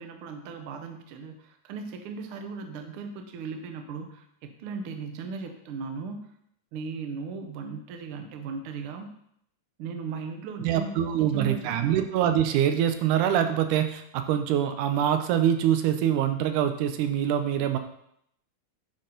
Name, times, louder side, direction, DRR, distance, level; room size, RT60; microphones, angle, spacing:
voice 1, 0.0-6.2 6.7-9.1 9.8-12.0, right 4 dB, 75° right, 5 dB, 1.2 m, -37 dB
voice 2, 10.6-17.8, right 10 dB, 90° right, 8 dB, 2.1 m, -24 dB
10.0 x 4.2 x 3.8 m, 0.73 s
omnidirectional pair, 3.5 m